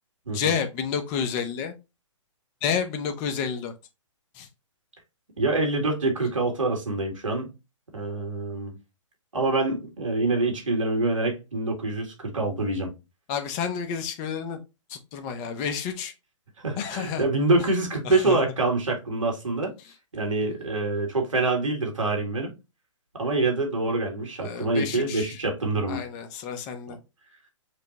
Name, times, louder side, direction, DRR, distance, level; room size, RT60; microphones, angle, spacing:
voice 1, 0.3-1.7 2.6-3.7 4.3-4.5 13.3-14.6 14.9-16.1 16.8-17.2 18.0-18.4 24.4-25.4 25.9-27.0, left 7 dB, 30° left, 0.8 m, -30 dB
voice 2, 5.4-7.5 7.9-8.7 9.3-12.9 16.6-19.7 20.1-22.5 23.1-26.0 26.9-27.0, right 2 dB, 90° right, 2.3 m, -25 dB
5.0 x 2.3 x 4.1 m
hypercardioid pair, 135°, 16 cm